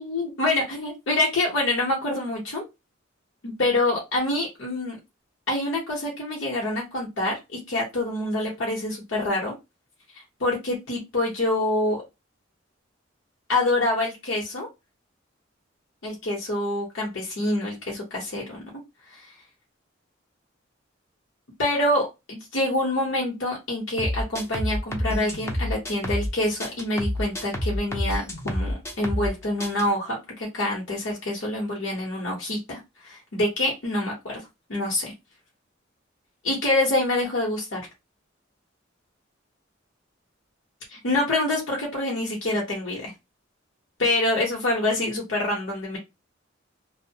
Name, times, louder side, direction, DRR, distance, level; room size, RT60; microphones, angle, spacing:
voice 1, 0.0-2.6 3.4-4.9 5.5-9.5 10.4-12.0 13.5-14.7 16.0-18.6 19.1-19.3 21.6-34.4 34.7-35.1 36.4-37.8 40.9-43.1 44.0-46.0, left 1 dB, 70° left, -2 dB, 0.9 m, -26 dB
sound 1, 24.0-26.3 26.6-29.3 29.6-29.8, left 1 dB, 15° left, 0.5 m, -28 dB
2.7 x 2.1 x 2.7 m, 0.23 s
head